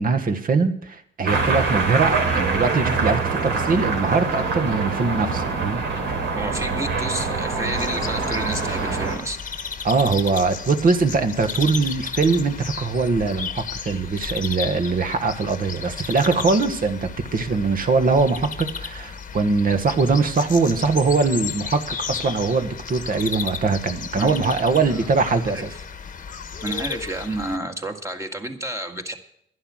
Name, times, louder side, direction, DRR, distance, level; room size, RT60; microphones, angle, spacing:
voice 1, 0.0-5.8 9.8-25.7, right 4 dB, 45° right, 8 dB, 1.6 m, -22 dB
sound 1, 1.3-9.2, right 4 dB, 70° right, 3.5 m, -24 dB
voice 2, 6.4-9.4 24.2-24.4 24.9-25.1 25.5-25.7 26.6-29.1, right 1 dB, 15° right, 4 dB, 1.9 m, -30 dB
sound 2, 7.7-27.6, left 6 dB, 40° left, 1.1 m, -34 dB
11.5 x 11.0 x 6.4 m, 0.70 s
cardioid pair, 90°, 20 cm